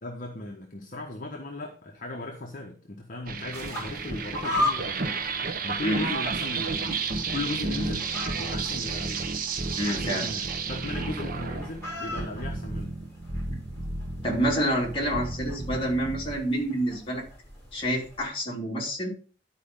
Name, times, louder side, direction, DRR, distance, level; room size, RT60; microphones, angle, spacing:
voice 1, 0.0-5.3 5.6-8.1 8.4-9.2 9.8-12.9, left 2 dB, 45° left, 2 dB, 1.1 m, -37 dB
sound 1, 3.3-16.4, right 4 dB, 50° right, 0.9 m, -32 dB
sound 2, 3.5-18.3, left 1 dB, 15° left, 6.1 m, -38 dB
voice 2, 5.8-6.1 9.8-10.3 13.5-13.6 14.2-17.2 17.7-19.1, right 1 dB, 30° left, -2 dB, 2.9 m, -28 dB
11.0 x 5.0 x 5.4 m, 0.40 s
head